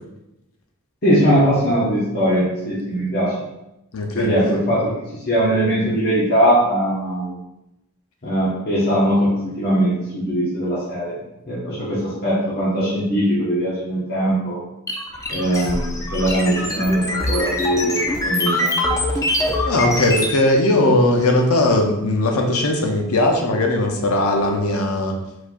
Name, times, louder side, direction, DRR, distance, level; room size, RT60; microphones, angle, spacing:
voice 1, 1.0-3.3 4.1-4.9 5.2-7.3 8.2-11.2 11.5-14.6 15.3-18.8, equal, 45° left, -9 dB, 1.2 m, -20 dB
voice 2, 3.9-4.3 15.7-15.8 19.7-25.1, left 1 dB, 75° left, 2 dB, 0.6 m, -18 dB
sound 1, 14.9-20.4, left 1 dB, 15° left, 0.4 m, -23 dB
4.5 x 4.2 x 2.4 m, 0.89 s
head